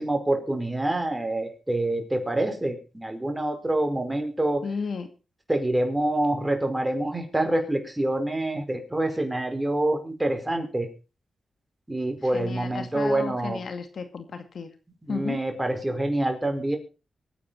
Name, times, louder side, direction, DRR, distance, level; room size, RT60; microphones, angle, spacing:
voice 1, 0.0-4.6 5.5-10.9 11.9-13.6 15.0-16.8, right 1 dB, 15° right, 5 dB, 4.9 m, -26 dB
voice 2, 4.6-5.1 12.3-14.7 15.1-15.4, left 5 dB, 65° left, 8 dB, 2.3 m, -33 dB
23.5 x 9.4 x 4.2 m, 0.32 s
cardioid pair, 65°, 0 cm